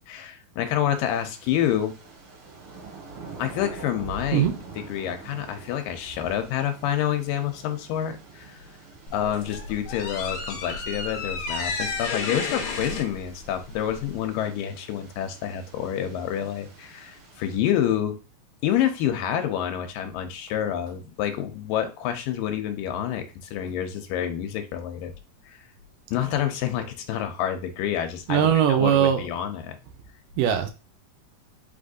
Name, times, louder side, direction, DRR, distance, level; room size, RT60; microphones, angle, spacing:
voice 1, 0.0-1.9 3.4-4.5 4.8-8.6 9.1-18.2 18.6-25.1 26.1-29.8, left 10 dB, 85° left, 6 dB, 2.3 m, -28 dB
sound 1, 0.9-17.6, right 4 dB, 55° right, 1.9 m, -47 dB
sound 2, 9.1-14.3, left 4 dB, 65° left, 1.9 m, -32 dB
voice 2, 28.3-29.2 30.4-30.7, right 10 dB, 80° right, 6 dB, 2.2 m, -20 dB
5.3 x 3.6 x 2.5 m, 0.31 s
omnidirectional pair, 4.1 m